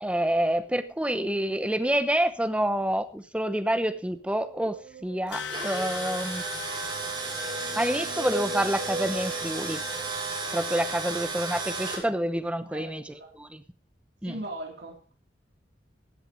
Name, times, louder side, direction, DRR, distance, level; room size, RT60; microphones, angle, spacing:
voice 1, 0.0-6.4 7.7-9.8 10.5-13.6 14.2-14.3, right 1 dB, 5° right, 11 dB, 0.9 m, -28 dB
sound 1, 4.2-5.9 6.7-10.6, right 1 dB, 45° right, 1.4 m, -39 dB
sound 2, 5.3-8.2, left 7 dB, 85° left, 1.2 m, -40 dB
Tools, 5.3-12.0, right 3 dB, 30° right, 5.6 m, -33 dB
voice 2, 12.7-13.3 14.2-15.0, right 1 dB, 70° right, 1 dB, 3.9 m, -39 dB
15.5 x 7.7 x 5.2 m, 0.39 s
head